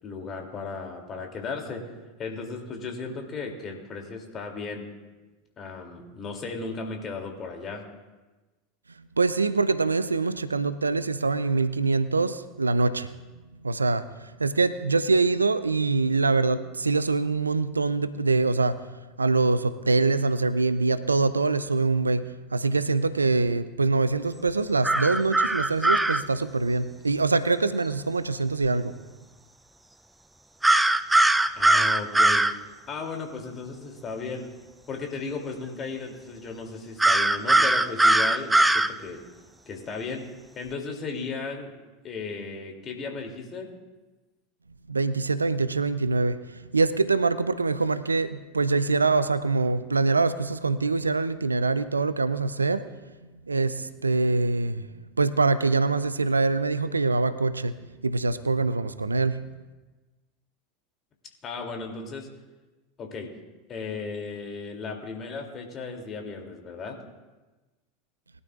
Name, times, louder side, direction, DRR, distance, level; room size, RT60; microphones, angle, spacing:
voice 1, 0.0-4.9 5.6-7.8 31.5-32.5 32.9-34.5 34.9-39.2 39.7-40.3 40.5-41.7 42.0-43.7 61.4-62.3 63.0-63.3 63.7-67.0, left 4 dB, 35° left, 2 dB, 2.7 m, -35 dB
voice 2, 9.2-13.1 13.6-18.8 19.2-22.2 22.5-29.0 44.9-52.9 53.5-54.9 55.2-57.7 58.0-59.4, right 3 dB, 85° right, 14 dB, 0.5 m, -24 dB
sound 1, 24.8-26.2 30.6-32.5 37.0-38.9, right 2 dB, 10° right, 0.5 m, -20 dB
21.5 x 12.0 x 2.4 m, 1.2 s
figure-of-eight pair, 80°, 0 cm